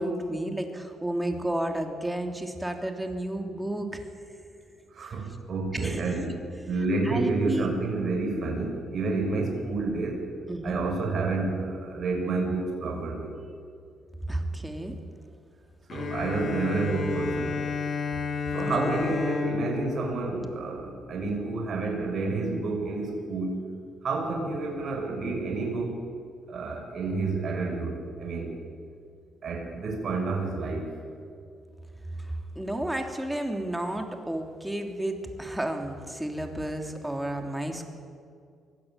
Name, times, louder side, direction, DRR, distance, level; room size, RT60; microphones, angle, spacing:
voice 1, 0.0-4.0 5.7-6.0 7.1-7.7 10.5-10.8 14.3-14.9 18.6-19.2 32.5-37.8, right 1 dB, 5° right, 4 dB, 3.1 m, -32 dB
voice 2, 4.9-6.3 6.6-10.3 10.6-13.3 15.9-17.6 18.5-23.7 24.0-25.9 26.5-28.5 29.4-30.9, right 3 dB, 55° right, 0 dB, 6.2 m, -29 dB
Bowed string instrument, 15.9-21.4, left 5 dB, 50° left, 4.5 m, -32 dB
24.0 x 16.0 x 9.2 m, 2.3 s
cardioid pair, 90°, 0 cm